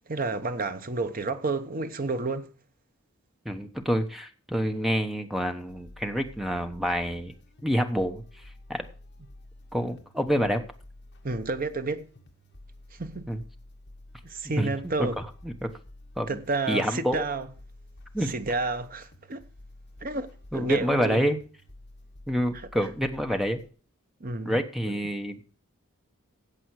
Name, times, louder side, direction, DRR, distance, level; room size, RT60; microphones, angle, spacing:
voice 1, 0.1-2.5 11.2-12.1 13.0-13.3 14.2-15.2 16.3-17.5 18.3-19.4 20.0-21.2 22.7-22.8 24.2-25.0, right 3 dB, 40° right, 0.9 m, -31 dB
voice 2, 3.4-7.3 7.6-8.2 8.7-8.9 9.7-10.6 13.3-13.4 14.6-14.7 15.0-15.7 16.2-16.4 16.7-17.2 18.1-18.3 20.5-21.4 22.3-23.6 24.4-25.5, equal, ahead, 1.0 m, -27 dB
sound 1, 5.4-23.7, left 1 dB, 50° left, 1.7 m, -51 dB
14.0 x 7.9 x 4.7 m
head